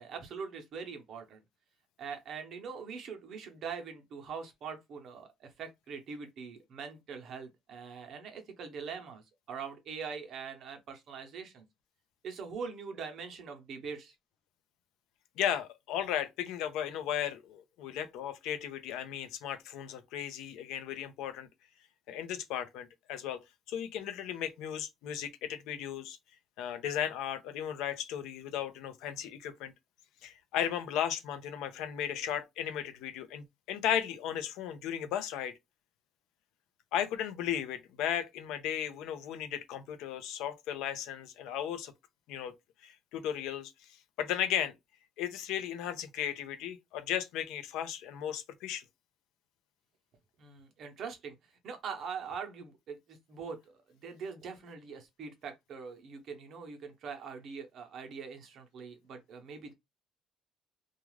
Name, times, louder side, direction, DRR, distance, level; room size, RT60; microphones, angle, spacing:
voice 1, 0.0-1.4 2.0-11.6 12.2-14.1 50.4-51.4 51.6-59.7, right 6 dB, 45° right, 0.7 m, -43 dB
voice 2, 15.4-21.5 22.1-23.4 23.7-26.2 26.6-29.7 30.2-35.5 36.9-41.9 42.3-42.5 42.8-43.7 44.2-44.7 45.2-48.8, left 10 dB, 75° left, 0.5 m, -35 dB
2.4 x 2.3 x 3.1 m
cardioid pair, 170°, 0 cm